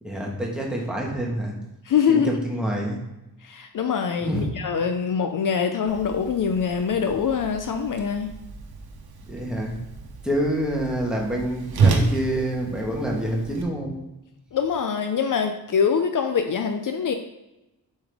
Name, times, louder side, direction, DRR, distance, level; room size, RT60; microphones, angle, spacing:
voice 1, 0.0-1.6 2.1-3.0 4.2-4.5 9.2-9.8 10.2-14.0, right 1 dB, ahead, -2 dB, 1.4 m, -27 dB
voice 2, 1.9-2.3 3.4-8.3 14.5-17.1, left 6 dB, 55° left, 6 dB, 0.6 m, -24 dB
Whoosh swoosh swish, 5.9-13.6, right 4 dB, 75° right, 1.1 m, -29 dB
7.2 x 5.3 x 3.5 m, 0.94 s
wide cardioid pair, 165°, 38 cm